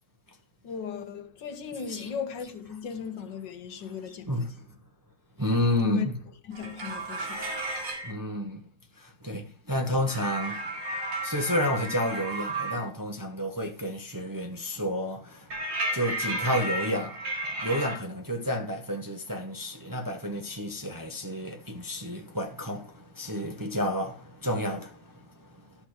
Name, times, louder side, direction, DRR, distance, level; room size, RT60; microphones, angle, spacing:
voice 1, 0.6-4.3 5.8-6.1 6.4-7.5, left 7 dB, 80° left, 1.8 m, -37 dB
voice 2, 1.7-2.1 4.1-4.5 5.4-6.2 8.0-8.6 9.0-10.7 11.2-15.6 15.9-17.2 17.6-25.5, equal, 15° right, 0.9 m, -31 dB
sound 1, 6.5-8.1 10.1-12.9 15.5-17.9, right 1 dB, 90° right, 2.8 m, -33 dB
11.5 x 6.1 x 4.8 m
omnidirectional pair, 1.9 m